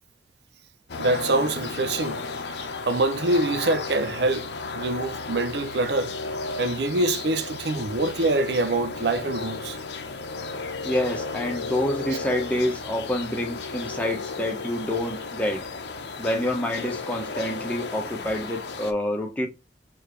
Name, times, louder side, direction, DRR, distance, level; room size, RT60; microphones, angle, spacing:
sound 1, 0.9-18.9, left 4 dB, 70° left, 0.8 m, -34 dB
voice 1, 1.0-4.5 4.7-6.1 6.6-9.8, right 2 dB, 65° right, 0.6 m, -25 dB
voice 2, 10.8-15.6 16.2-19.5, left 1 dB, 10° left, 1.1 m, -27 dB
4.6 x 3.4 x 3.2 m
head